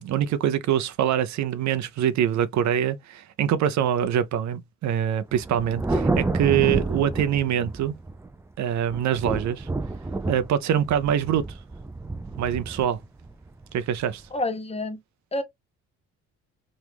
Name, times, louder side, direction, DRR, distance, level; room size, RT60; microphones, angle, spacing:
voice 1, 0.0-7.9 8.6-9.7 10.3-11.6 12.4-13.0 13.7-14.2, right 10 dB, 65° right, 0.6 m, -24 dB
Thunder, 5.3-8.4 8.9-14.2, right 3 dB, 10° right, 0.3 m, -29 dB
voice 2, 14.3-15.0 15.3-15.4, left 2 dB, 20° left, 0.7 m, -28 dB
3.0 x 2.4 x 3.3 m
cardioid pair, 90°, 30 cm